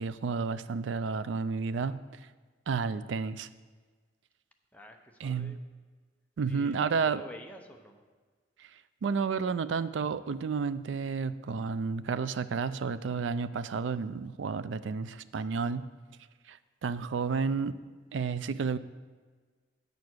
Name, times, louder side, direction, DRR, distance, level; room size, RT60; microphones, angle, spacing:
voice 1, 0.0-2.1 2.7-3.5 5.2-5.6 6.4-7.2 8.6-8.7 9.0-15.9 16.5-17.8 18.1-18.8, right 5 dB, 85° right, 14 dB, 0.4 m, -31 dB
voice 2, 4.7-5.6 6.5-8.0, left 1 dB, 10° left, 3 dB, 0.7 m, -49 dB
8.3 x 6.8 x 6.2 m, 1.4 s
head